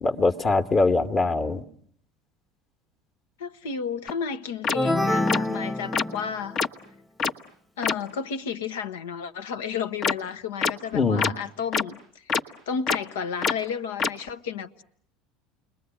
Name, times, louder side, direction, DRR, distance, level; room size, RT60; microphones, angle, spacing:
voice 1, 0.0-1.6 10.9-11.3, left 3 dB, 35° left, 1.5 m, -22 dB
voice 2, 3.4-6.7 7.8-12.3 12.7-14.8, left 6 dB, 85° left, 1.1 m, -32 dB
sound 1, 4.1-4.2 4.6-4.8 5.3-5.4 5.9-6.0 6.6-6.7 7.2-7.3 7.8-7.9 10.0-10.1 10.6-10.7 11.2-11.3 11.7-11.8 12.3-12.4 12.9-13.0 13.4-13.5 14.0-14.1, left 5 dB, 50° left, 1.2 m, -23 dB
sound 2, 4.7-6.6, left 1 dB, 10° left, 1.1 m, -26 dB
29.5 x 21.0 x 9.2 m
hypercardioid pair, 85°, 0 cm